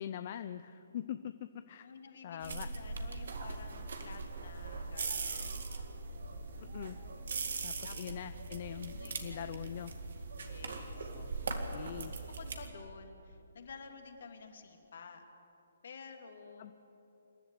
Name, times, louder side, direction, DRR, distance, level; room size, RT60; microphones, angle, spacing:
voice 1, 0.0-1.9 2.2-2.7 6.6-7.0 7.6-9.9 11.1-11.3 11.7-12.1 16.6-16.7, left 10 dB, 45° left, 11 dB, 0.6 m, -43 dB
voice 2, 1.8-5.6 6.1-6.5 7.8-8.2 8.9-9.4 10.4-11.6 12.4-15.2 15.8-16.7, left 5 dB, 65° left, 5 dB, 2.5 m, -52 dB
sound 1, 2.4-12.7, right 4 dB, 65° right, 2.1 m, -40 dB
27.5 x 11.5 x 9.2 m, 3.0 s
hypercardioid pair, 140°, 0 cm